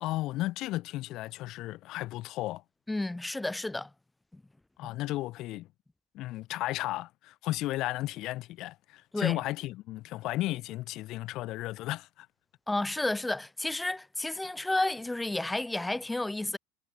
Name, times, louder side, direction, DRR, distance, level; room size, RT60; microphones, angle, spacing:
voice 1, 0.0-2.6 4.8-5.7 6.1-12.3, left 17 dB, 55° left, 1.2 m, -34 dB
voice 2, 2.9-3.9 4.3-4.4 4.8-4.9 9.1-9.4 12.7-16.6, left 2 dB, 10° left, 0.8 m, -31 dB
hypercardioid pair, 100°, 0 cm